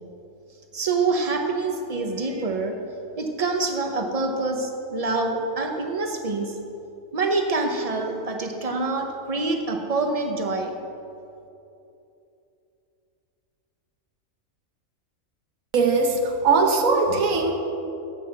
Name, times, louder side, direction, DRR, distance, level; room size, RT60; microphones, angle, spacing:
voice 1, 0.7-2.8 3.2-6.6 7.1-10.8, right 3 dB, 30° right, 3 dB, 0.8 m, -26 dB
voice 2, 15.7-17.5, right 4 dB, 75° right, 4 dB, 1.4 m, -20 dB
8.1 x 7.7 x 6.4 m, 2.8 s
omnidirectional pair, 1.4 m